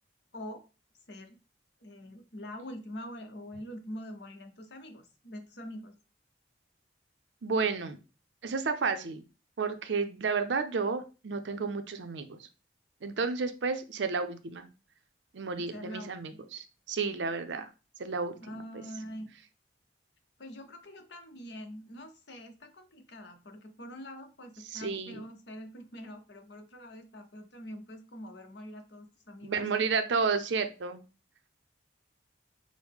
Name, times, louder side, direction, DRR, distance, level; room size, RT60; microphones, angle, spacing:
voice 1, 1.8-5.9 15.7-16.5 18.4-19.3 20.4-29.7, equal, 65° left, 5 dB, 0.8 m, -44 dB
voice 2, 7.4-8.0 8.4-9.2 9.6-12.4 13.0-14.7 15.3-17.7 18.0-18.4 24.7-25.2 29.4-31.0, right 4 dB, 75° right, 9 dB, 0.5 m, -31 dB
6.1 x 2.1 x 3.5 m, 0.32 s
head